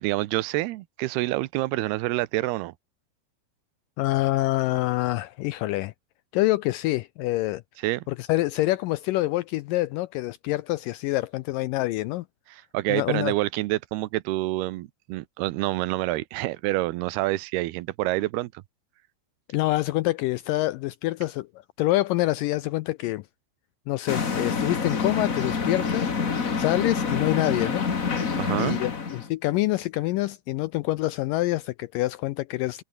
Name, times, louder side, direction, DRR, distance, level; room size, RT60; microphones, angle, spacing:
voice 1, 0.0-2.7 7.8-8.0 12.5-18.5 28.4-28.8, right 18 dB, 90° right, 2.9 m, -27 dB
voice 2, 4.0-5.9 6.3-7.6 8.1-12.3 12.9-13.3 19.5-21.5 21.8-23.3 23.9-26.1 26.5-27.9 28.6-32.8, left 18 dB, 80° left, 2.0 m, -26 dB
sound 1, 24.1-29.3, left 5 dB, 40° left, 1.2 m, -27 dB
omnidirectional pair, 4.4 m